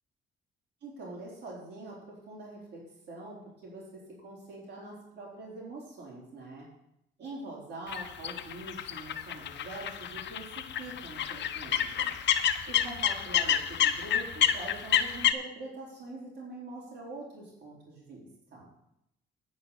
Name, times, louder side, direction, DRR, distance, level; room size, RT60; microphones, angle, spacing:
voice 1, 0.8-2.8 3.1-6.7 7.2-12.1 12.7-18.7, right 2 dB, 55° right, -5 dB, 3.9 m, -44 dB
sound 1, 7.9-15.3, left 9 dB, 65° left, 0.8 m, -29 dB
9.4 x 5.8 x 8.3 m, 0.81 s
cardioid pair, 90°, 20 cm